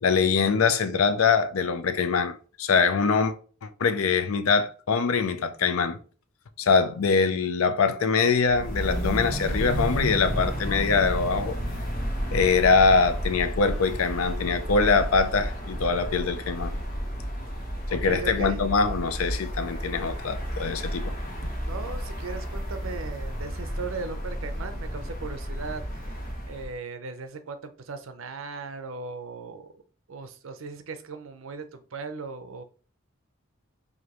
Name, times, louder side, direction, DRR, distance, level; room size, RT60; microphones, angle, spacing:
voice 1, 0.0-3.3 3.6-6.0 6.6-11.6 12.3-16.7 17.9-21.1, left 5 dB, 85° left, 0.5 m, -23 dB
sound 1, 8.4-26.7, equal, 40° left, 1.1 m, -32 dB
voice 2, 17.9-18.7 21.6-26.1 26.5-29.8 30.1-32.6, right 4 dB, 75° right, 0.6 m, -38 dB
4.9 x 2.7 x 3.0 m
head